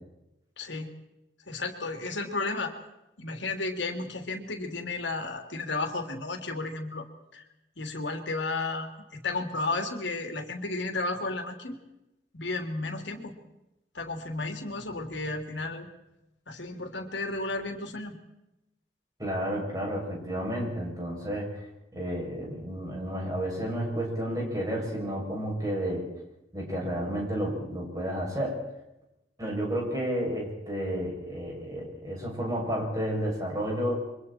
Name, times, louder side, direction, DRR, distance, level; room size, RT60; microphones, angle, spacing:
voice 1, 0.6-0.9 1.5-2.7 3.2-7.0 7.3-7.4 7.8-11.8 12.3-13.3 13.9-15.9 16.5-18.2, left 3 dB, 80° left, 4 dB, 3.1 m, -33 dB
voice 2, 19.2-21.5 21.9-26.1 26.5-28.6 29.4-34.0, equal, 20° right, -2 dB, 7.3 m, -31 dB
29.0 x 24.5 x 4.5 m, 0.91 s
head